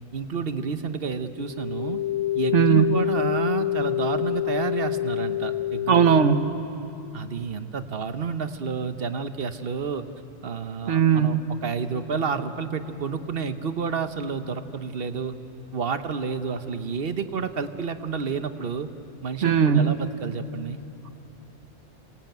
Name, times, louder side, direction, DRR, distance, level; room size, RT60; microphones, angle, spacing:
voice 1, 0.1-2.0 2.4-6.2 7.1-10.1 10.4-15.4 15.7-18.9 19.2-20.8, right 5 dB, 55° right, 10 dB, 1.2 m, -30 dB
sound 1, 1.4-6.4, left 13 dB, 90° left, 3.2 m, -27 dB
voice 2, 2.5-2.9 5.9-6.5 10.9-11.4 19.4-20.0, right 8 dB, 85° right, 10 dB, 1.3 m, -19 dB
27.0 x 19.0 x 9.1 m, 2.9 s
omnidirectional pair, 1.2 m